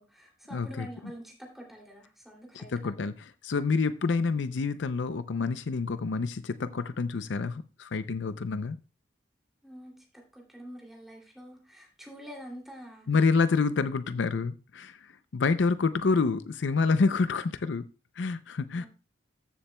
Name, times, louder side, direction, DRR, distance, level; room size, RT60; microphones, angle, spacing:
voice 1, 0.0-2.9 9.6-10.1 10.3-13.1 18.8-18.9, equal, ahead, -1 dB, 2.6 m, -46 dB
voice 2, 0.5-0.9 2.5-8.8 13.1-15.0 15.3-17.9 18.2-18.9, left 4 dB, 70° left, 13 dB, 0.5 m, -28 dB
14.0 x 7.2 x 2.2 m, 0.32 s
head